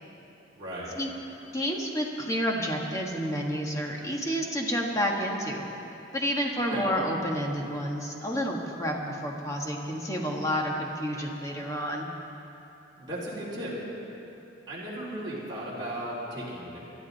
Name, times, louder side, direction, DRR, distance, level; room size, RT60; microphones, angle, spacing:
voice 1, 0.6-0.9 6.7-6.9 13.0-13.7 14.7-16.8, right 1 dB, 20° right, -9 dB, 3.5 m, -36 dB
voice 2, 1.5-5.7 6.1-12.1, equal, 15° left, 0 dB, 1.5 m, -30 dB
22.5 x 12.5 x 4.1 m, 3.0 s
head